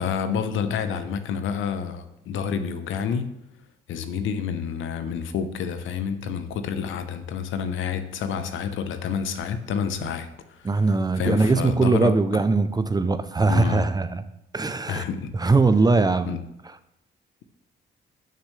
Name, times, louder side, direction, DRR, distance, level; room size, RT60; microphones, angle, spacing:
voice 1, 0.0-3.3 3.9-10.3 10.6-10.7 11.2-12.1 13.5-13.9 14.9-15.3 16.3-16.4, left 7 dB, 80° left, 10 dB, 0.9 m, -28 dB
voice 2, 10.6-14.2 14.5-15.0 15.3-16.3 16.6-16.8, right 3 dB, 20° right, 12 dB, 0.6 m, -21 dB
13.0 x 6.6 x 3.3 m, 0.83 s
cardioid pair, 90°, 20 cm